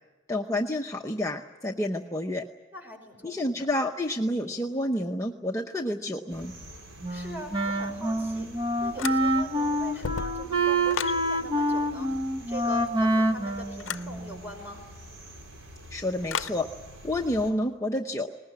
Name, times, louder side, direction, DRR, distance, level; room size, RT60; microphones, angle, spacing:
voice 1, 0.3-2.4 3.2-6.5 15.9-16.7 17.0-18.3, left 1 dB, 15° left, 2 dB, 0.8 m, -29 dB
voice 2, 2.7-3.7 7.1-8.5 8.8-12.1 12.5-14.9, equal, 10° right, 3 dB, 5.5 m, -42 dB
sound 1, 6.3-17.5, right 1 dB, 85° right, 4.7 m, -47 dB
Wind instrument woodwind instrument, 7.0-14.5, right 1 dB, 25° right, 1.4 m, -27 dB
sound 2, 9.0-9.6 9.9-11.2 13.8-14.1 16.3-16.6, left 7 dB, 75° left, 0.6 m, -34 dB
20.5 x 19.5 x 9.8 m, 1.3 s
head